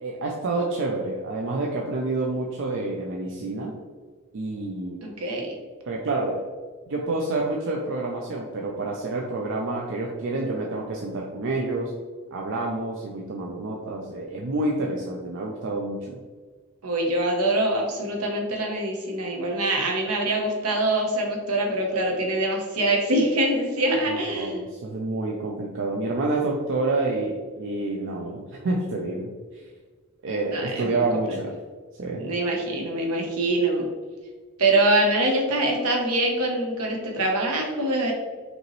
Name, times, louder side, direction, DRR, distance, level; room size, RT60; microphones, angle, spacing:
voice 1, 0.0-3.7 4.3-5.0 5.8-6.4 6.9-11.9 12.3-16.2 24.3-29.3 30.2-31.5 32.0-32.2, right 2 dB, 60° right, -1 dB, 0.5 m, -28 dB
voice 2, 5.0-5.5 16.8-24.6 30.5-31.4 32.2-33.9 34.6-38.1, right 1 dB, 75° right, 0 dB, 1.0 m, -24 dB
5.2 x 2.9 x 3.1 m, 1.5 s
head